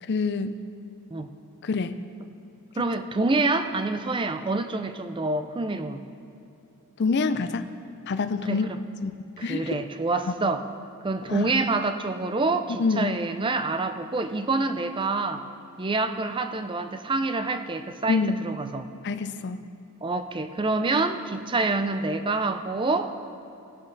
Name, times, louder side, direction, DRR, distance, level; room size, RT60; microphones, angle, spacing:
voice 1, 0.0-0.6 1.6-2.0 7.0-7.7 8.1-8.7 9.0-9.1 9.4-9.7 11.3-11.5 12.8-13.2 18.1-18.4 19.0-19.6, left 4 dB, 50° left, 11 dB, 0.4 m, -26 dB
voice 2, 2.8-6.0 8.5-8.8 9.4-10.6 11.0-15.4 15.8-18.9 20.0-23.1, right 3 dB, 20° right, 9 dB, 0.4 m, -27 dB
17.0 x 7.3 x 3.9 m, 2.8 s
head